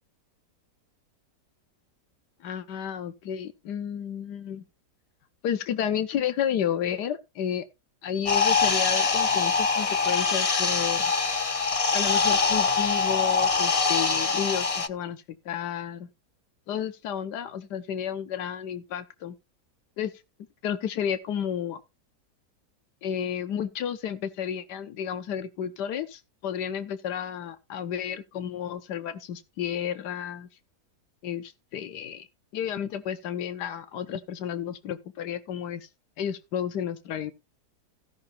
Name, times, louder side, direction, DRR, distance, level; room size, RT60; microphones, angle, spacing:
voice 1, 2.4-4.6 5.4-7.7 8.0-11.1 11.9-16.1 16.7-19.3 20.0-20.1 20.6-21.8 23.0-30.5 31.2-32.3 32.5-35.9 36.2-37.3, left 9 dB, 85° left, 1.6 m, -32 dB
sound 1, 8.3-14.9, left 4 dB, 60° left, 0.3 m, -24 dB
16.0 x 5.7 x 4.2 m
omnidirectional pair, 1.8 m